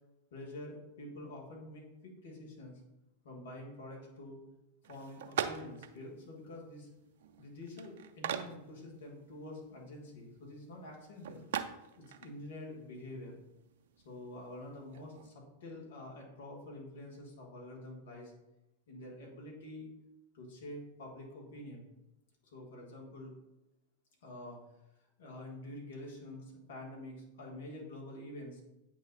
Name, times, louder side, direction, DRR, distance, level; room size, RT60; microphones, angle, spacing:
voice 1, 0.3-2.8 3.2-4.4 4.9-6.9 7.4-11.4 12.0-13.4 14.0-18.3 18.9-19.9 20.3-21.9 22.5-23.3 24.2-24.6 25.2-28.6, left 1 dB, 60° left, -1 dB, 2.1 m, -47 dB
sound 1, 4.8-15.3, right 8 dB, 55° right, 0.5 m, -44 dB
8.6 x 3.3 x 4.2 m, 0.91 s
figure-of-eight pair, 90°, 0 cm